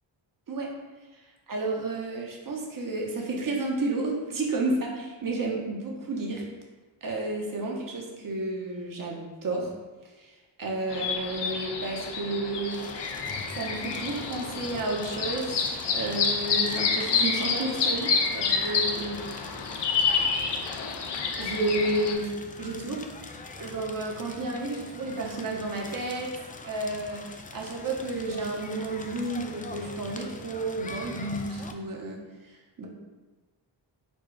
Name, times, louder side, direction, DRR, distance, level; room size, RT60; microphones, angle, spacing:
voice 1, 1.5-6.4 7.0-9.7 10.0-12.8 13.5-15.6 15.9-19.2 21.4-22.3 22.6-23.0 23.6-26.3 26.6-27.2 27.5-32.9, right 2 dB, 45° right, -1 dB, 1.0 m, -31 dB
sound 1, 10.9-22.1, left 5 dB, 65° left, 0.7 m, -29 dB
Crackle, 12.7-31.7, left 3 dB, 20° left, 0.3 m, -43 dB
4.4 x 2.3 x 4.6 m, 1.2 s
cardioid pair, 80°, 45 cm